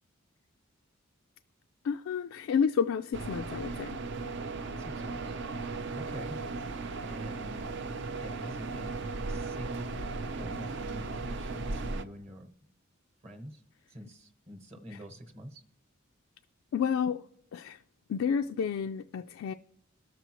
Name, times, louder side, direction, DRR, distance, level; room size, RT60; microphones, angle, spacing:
voice 1, 1.8-4.0 14.9-15.0 16.7-17.2 17.5-17.8 18.1-19.5, left 7 dB, 75° left, 0.3 m, -30 dB
sound 1, 3.1-12.0, right 3 dB, 60° right, 0.5 m, -36 dB
voice 2, 4.8-5.3 5.9-6.4 7.0-7.7 8.1-10.0 10.4-12.5 13.2-13.6 13.9-15.6, equal, 30° right, 1.0 m, -46 dB
19.5 x 6.9 x 3.0 m
head